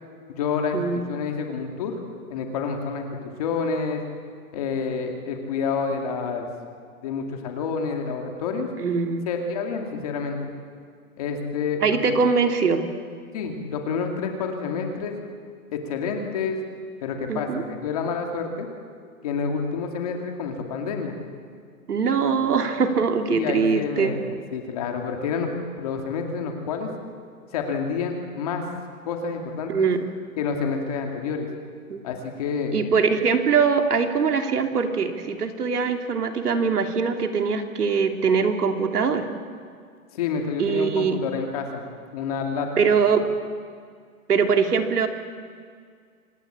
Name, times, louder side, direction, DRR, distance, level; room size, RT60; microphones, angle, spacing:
voice 1, 0.4-1.9 2.3-4.0 4.5-6.5 7.0-8.7 9.3-10.5 11.2-12.2 13.3-15.1 15.7-16.6 17.0-18.7 19.2-21.2 23.3-24.2 24.5-26.9 27.5-28.6 29.1-29.9 30.4-31.5 32.0-32.7 40.1-41.8 42.1-43.0, left 5 dB, 25° left, 3 dB, 2.3 m, -28 dB
voice 2, 8.8-9.2 11.8-12.9 17.3-17.6 21.9-24.2 29.7-30.0 31.9-32.0 32.7-39.3 40.6-41.2 42.8-43.2 44.3-45.1, right 5 dB, 85° right, 5 dB, 2.9 m, -22 dB
25.5 x 19.5 x 8.8 m, 2.1 s
hypercardioid pair, 175°, 45 cm